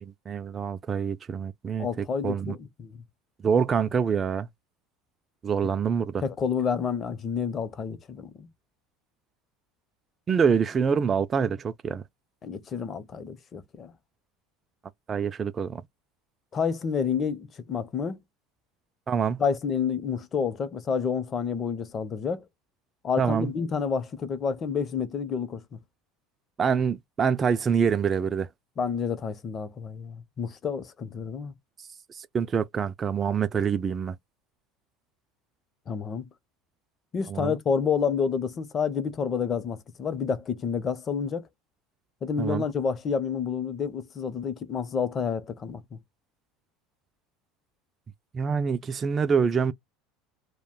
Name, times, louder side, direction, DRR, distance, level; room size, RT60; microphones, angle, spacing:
voice 1, 0.0-2.6 3.4-4.5 5.4-6.2 10.3-12.0 15.1-15.8 19.1-19.4 23.2-23.5 26.6-28.5 32.1-34.2 37.3-37.5 42.4-42.6 48.3-49.7, right 6 dB, 30° right, 0.3 m, -26 dB
voice 2, 1.8-2.9 6.2-8.5 12.4-13.9 16.5-18.2 19.4-22.4 23.0-25.8 28.8-31.5 35.9-36.3 37.1-41.5 42.2-46.0, left 6 dB, 35° left, 0.6 m, -29 dB
2.4 x 2.1 x 3.6 m
supercardioid pair, 95°, 0 cm